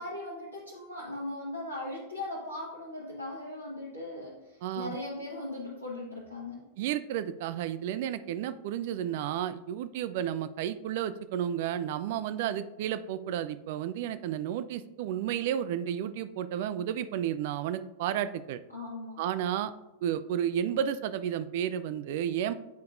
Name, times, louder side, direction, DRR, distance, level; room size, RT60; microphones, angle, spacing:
voice 1, 0.0-6.7 18.7-19.2, left 2 dB, 85° left, -5 dB, 1.0 m, -39 dB
voice 2, 6.8-18.6 19.2-19.7 20.0-22.5, right 10 dB, 50° right, 13 dB, 0.3 m, -32 dB
8.0 x 4.6 x 2.5 m, 1.0 s
figure-of-eight pair, 90°, 0 cm